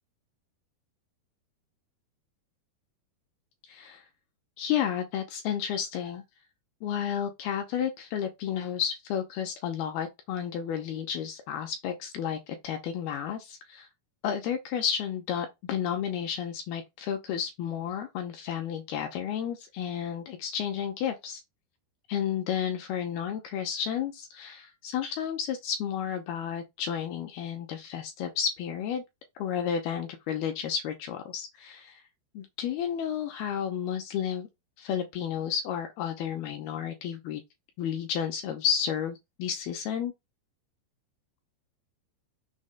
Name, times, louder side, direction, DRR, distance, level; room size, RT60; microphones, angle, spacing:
voice 1, 3.7-4.0 4.6-6.2 6.8-13.9 14.2-21.4 22.1-29.0 29.4-32.0 32.3-34.5 34.8-37.4 37.8-40.1, left 8 dB, 75° left, 2.5 m, -32 dB
6.4 x 3.2 x 5.1 m
omnidirectional pair, 5.1 m